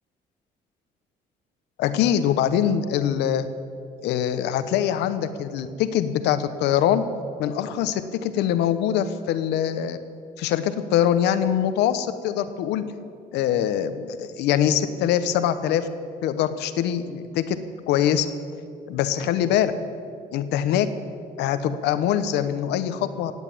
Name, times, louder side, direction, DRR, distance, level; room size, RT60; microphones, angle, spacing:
voice 1, 1.8-3.5 4.0-7.0 7.4-10.0 10.4-12.8 13.3-15.9 16.2-17.6 17.9-18.3 18.9-19.7 20.3-20.9 21.4-23.3, left 10 dB, 85° left, 11 dB, 0.9 m, -23 dB
17.5 x 8.2 x 8.7 m, 2.3 s
cardioid pair, 80°, 17 cm